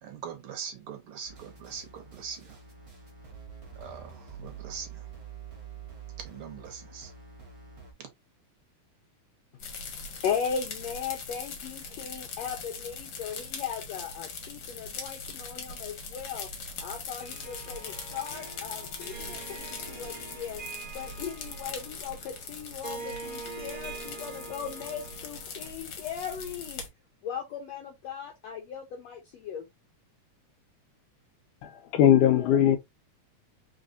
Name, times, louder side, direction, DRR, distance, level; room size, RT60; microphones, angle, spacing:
voice 1, 0.0-2.6 3.7-5.1 6.2-7.1 8.0-8.1, right 7 dB, 70° right, 1.3 m, -42 dB
sound 1, 1.2-7.9, right 6 dB, 40° right, 1.0 m, -46 dB
sound 2, 9.6-26.9, left 4 dB, 55° left, 1.7 m, -41 dB
voice 2, 10.2-16.5 16.8-20.6 20.9-26.8 27.2-29.7, left 7 dB, 75° left, 1.7 m, -37 dB
Harp, 17.2-25.6, right 4 dB, 20° right, 1.4 m, -44 dB
voice 3, 31.6-32.8, left 10 dB, 90° left, 2.3 m, -20 dB
4.1 x 4.0 x 2.6 m
omnidirectional pair, 3.6 m